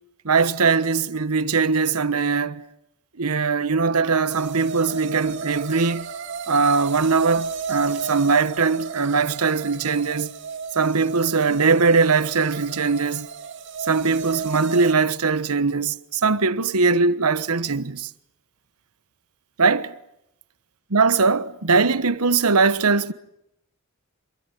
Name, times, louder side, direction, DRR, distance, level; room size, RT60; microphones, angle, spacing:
voice 1, 0.2-2.6 3.2-6.1 6.5-10.3 10.7-13.3 13.8-18.1 19.6-19.9 20.9-23.1, right 4 dB, 90° right, 1.2 m, -21 dB
sound 1, 4.3-14.9, right 6 dB, 55° right, 2.4 m, -33 dB
27.5 x 22.5 x 8.4 m
head